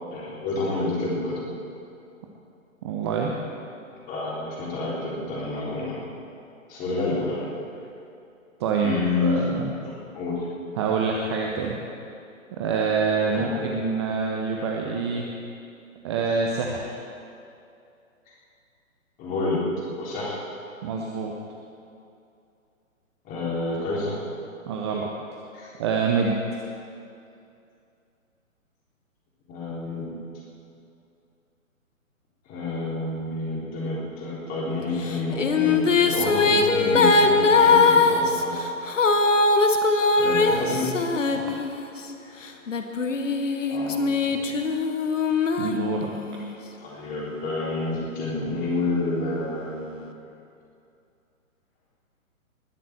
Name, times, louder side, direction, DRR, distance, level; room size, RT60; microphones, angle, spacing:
voice 1, 0.1-1.4 4.1-6.0 6.7-7.5 8.8-9.4 9.8-10.5 13.3-13.5 18.3-18.4 19.2-19.6 20.0-20.4 23.2-24.1 25.5-25.8 29.5-30.1 32.5-38.5 40.1-40.9 42.2-42.3 43.4-44.0 44.3-44.5 46.8-50.1, left 3 dB, 20° left, -5 dB, 3.8 m, -29 dB
voice 2, 2.8-3.3 8.6-9.7 10.8-11.8 12.5-15.3 16.0-17.0 20.8-21.3 24.7-25.1 25.8-26.4 41.3-41.6 45.6-46.1, right 5 dB, 20° right, 0 dB, 0.8 m, -26 dB
Female singing, 35.1-42.0 42.7-46.4, left 3 dB, 60° left, 1.4 m, -21 dB
20.0 x 7.6 x 7.9 m, 2.6 s
figure-of-eight pair, 130°, 42 cm